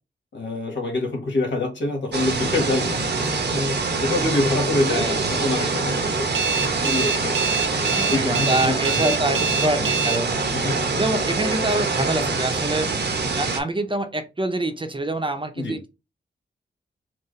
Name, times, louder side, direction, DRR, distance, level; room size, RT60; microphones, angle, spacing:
voice 1, 0.3-6.3 6.8-7.4 7.7-9.1 10.4-10.8 15.6-15.8, left 2 dB, 75° left, 1.5 m, -26 dB
sound 1, 2.1-13.6, right 4 dB, 65° right, 0.9 m, -25 dB
voice 2, 4.9-5.3 7.9-10.4 11.0-12.9 13.4-15.9, right 1 dB, 25° right, 0.7 m, -26 dB
Alarm, 6.3-10.2, right 5 dB, 90° right, 0.5 m, -24 dB
4.6 x 2.2 x 3.2 m
cardioid pair, 60°, 19 cm